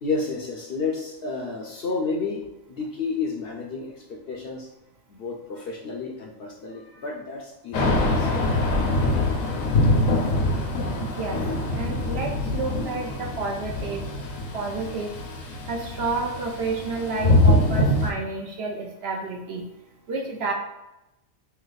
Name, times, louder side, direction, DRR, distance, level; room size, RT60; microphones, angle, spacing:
voice 1, 0.0-4.7 5.1-9.2, left 4 dB, 60° left, 0 dB, 0.6 m, -31 dB
Thunder / Rain, 7.7-18.1, left 1 dB, 75° left, 1.1 m, -24 dB
voice 2, 11.0-11.4 11.7-14.0 14.5-15.1 15.7-19.6 20.1-20.5, right 3 dB, 60° right, 1 dB, 0.7 m, -30 dB
3.2 x 2.8 x 3.9 m, 0.95 s
omnidirectional pair, 1.4 m